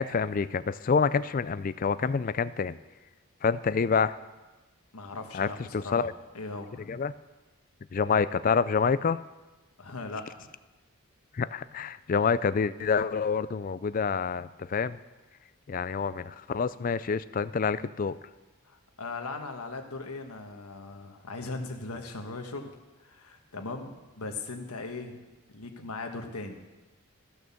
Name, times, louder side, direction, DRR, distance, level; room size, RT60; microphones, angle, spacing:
voice 1, 0.0-2.8 3.4-4.2 5.3-6.1 6.9-7.1 7.9-9.2 11.3-15.0 15.7-18.2, left 5 dB, 40° left, 15 dB, 0.3 m, -27 dB
voice 2, 4.9-6.1 6.3-6.8 9.8-10.5 18.7-22.7 23.0-25.2 25.5-26.6, left 3 dB, 80° left, 5 dB, 1.4 m, -39 dB
14.5 x 6.4 x 7.1 m, 1.1 s
head